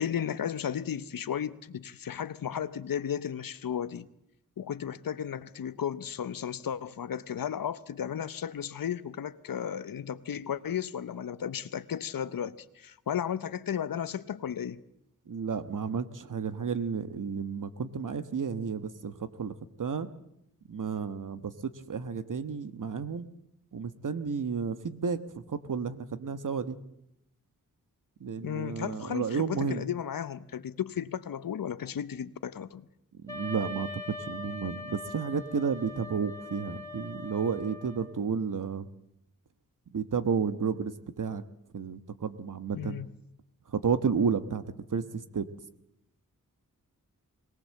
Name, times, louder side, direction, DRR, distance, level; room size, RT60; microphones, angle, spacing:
voice 1, 0.0-4.1 4.6-14.8 28.4-32.8 42.7-43.1, left 9 dB, 85° left, 0.9 m, -34 dB
voice 2, 15.3-19.5 19.8-20.1 20.7-23.3 23.7-25.2 25.5-26.8 28.2-29.8 33.2-38.9 39.9-41.4 41.7-43.0 43.7-44.6 44.9-45.5, right 6 dB, 65° right, 1.3 m, -32 dB
Wind instrument woodwind instrument, 33.3-38.2, left 2 dB, 10° left, 3.1 m, -42 dB
21.0 x 18.5 x 7.7 m
wide cardioid pair, 80°, 33 cm